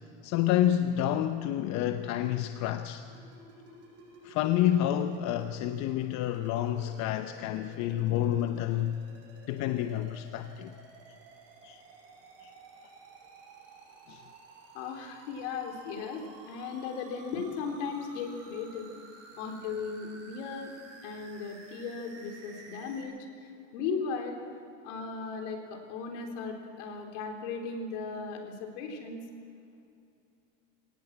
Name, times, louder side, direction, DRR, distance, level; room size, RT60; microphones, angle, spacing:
voice 1, 0.2-3.0 4.2-9.0 9.5-10.8 11.6-11.8 12.4-12.5 14.1-14.3, left 11 dB, 50° left, 0.9 m, -29 dB
sound 1, 3.0-23.0, right 3 dB, 40° right, 7.6 m, -53 dB
voice 2, 14.7-18.9 19.4-20.7 21.0-23.1 23.4-24.4 24.8-29.2, left 5 dB, 70° left, 3.9 m, -37 dB
22.5 x 18.0 x 7.5 m
supercardioid pair, 125°, 37 cm